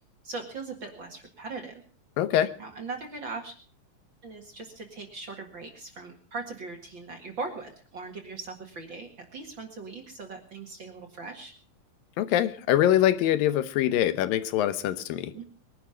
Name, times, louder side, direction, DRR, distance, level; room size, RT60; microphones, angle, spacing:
voice 1, 0.2-1.8 2.6-3.5 4.2-11.5 15.3-15.4, right 3 dB, 40° right, 3 dB, 2.2 m, -39 dB
voice 2, 2.2-2.5 12.2-15.3, left 12 dB, 90° left, 13 dB, 2.7 m, -24 dB
22.0 x 11.5 x 5.1 m, 0.42 s
omnidirectional pair, 3.9 m